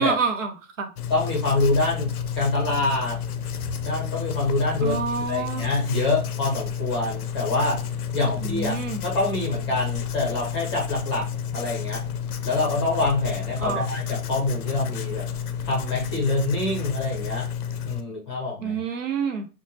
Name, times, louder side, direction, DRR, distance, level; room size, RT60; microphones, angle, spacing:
voice 1, 0.0-0.9 4.8-5.7 8.4-9.0 13.6-13.9 18.6-19.5, right 6 dB, 55° right, 0.8 m, -27 dB
Writing, 1.0-18.0, left 8 dB, 70° left, 0.6 m, -31 dB
voice 2, 1.1-3.2 3.8-7.9 8.1-12.0 12.4-15.3 15.6-17.5 17.8-18.8, left 2 dB, 15° left, 0.7 m, -26 dB
4.5 x 2.2 x 2.7 m
hypercardioid pair, 160°, 46 cm